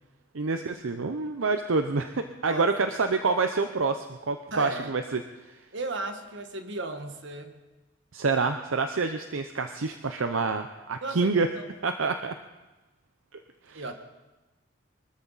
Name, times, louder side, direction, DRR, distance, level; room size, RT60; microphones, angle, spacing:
voice 1, 0.3-5.2 8.1-11.5 11.8-12.3 13.7-13.8, right 4 dB, 80° right, 7 dB, 0.7 m, -27 dB
voice 2, 4.5-4.9 5.7-7.6 11.0-11.3 13.7-13.9, right 2 dB, 60° right, 6 dB, 1.4 m, -35 dB
23.5 x 13.5 x 4.1 m, 1.1 s
head